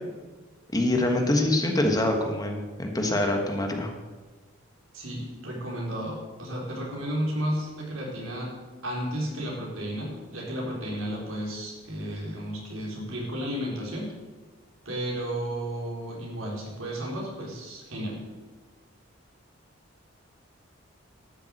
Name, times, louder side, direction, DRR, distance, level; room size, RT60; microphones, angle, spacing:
voice 1, 0.7-3.9, left 1 dB, 20° left, 3 dB, 1.3 m, -25 dB
voice 2, 4.9-8.5 8.8-14.1 14.8-18.2, equal, 80° right, -3 dB, 4.1 m, -33 dB
12.0 x 7.0 x 7.8 m, 1.3 s
head